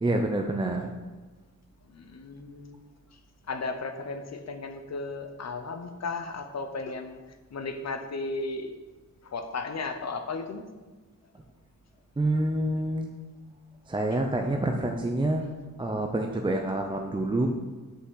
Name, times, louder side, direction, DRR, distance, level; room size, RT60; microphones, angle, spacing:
voice 1, 0.0-0.9 12.2-13.1 13.9-15.5 15.8-17.5, right 1 dB, 15° right, 3 dB, 0.5 m, -27 dB
voice 2, 1.9-2.8 3.5-7.2 7.5-8.7 9.3-10.6, left 3 dB, 55° left, 7 dB, 0.8 m, -35 dB
5.8 x 5.8 x 6.3 m, 1.3 s
wide cardioid pair, 150°, 32 cm